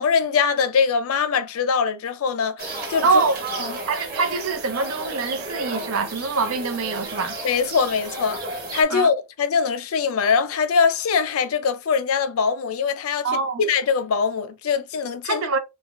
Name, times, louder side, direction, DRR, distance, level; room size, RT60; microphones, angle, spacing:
voice 1, 0.0-3.1 3.6-3.8 7.4-15.5, left 6 dB, 85° left, 0.4 m, -22 dB
sound 1, 2.6-8.8, right 2 dB, 45° right, 1.2 m, -33 dB
voice 2, 3.0-3.4 3.9-7.4 8.9-9.1 13.2-13.6 15.2-15.6, right 4 dB, 85° right, 0.6 m, -24 dB
3.2 x 2.4 x 2.4 m
head